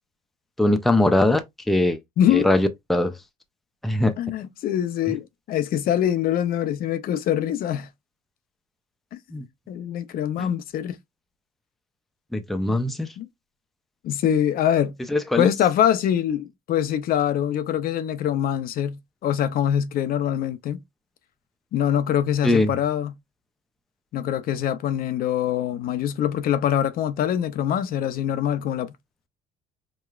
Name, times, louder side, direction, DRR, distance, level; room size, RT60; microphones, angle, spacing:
voice 1, 0.6-2.0 2.3-3.1 3.8-4.1 9.3-9.4 10.4-10.5 12.3-13.1 15.1-15.5 22.4-22.7, left 1 dB, ahead, 0.5 m, -21 dB
voice 2, 4.2-7.9 9.1-9.2 9.7-11.0 12.6-13.3 14.0-15.0 15.4-20.8 21.7-23.1 24.1-28.9, left 10 dB, 60° left, 0.5 m, -24 dB
4.8 x 2.3 x 2.3 m
cardioid pair, 110°, 17 cm